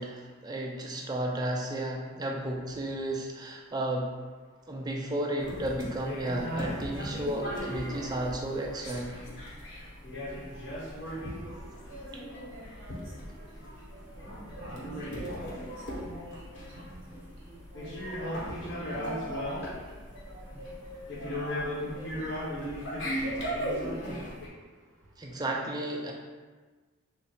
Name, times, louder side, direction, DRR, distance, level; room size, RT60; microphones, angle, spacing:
voice 1, 0.0-4.1 4.7-9.2 25.2-26.1, right 1 dB, 20° right, 0 dB, 0.4 m, -33 dB
sound 1, 5.4-24.5, equal, 60° left, 0.9 m, -37 dB
voice 2, 11.9-13.3 13.9-14.2 14.6-14.8 15.1-15.6 15.9-16.4 16.8-18.2 18.8-20.0 20.3-21.4 21.9-22.1, equal, 70° right, -4 dB, 1.1 m, -45 dB
4.1 x 2.0 x 4.0 m, 1.4 s
head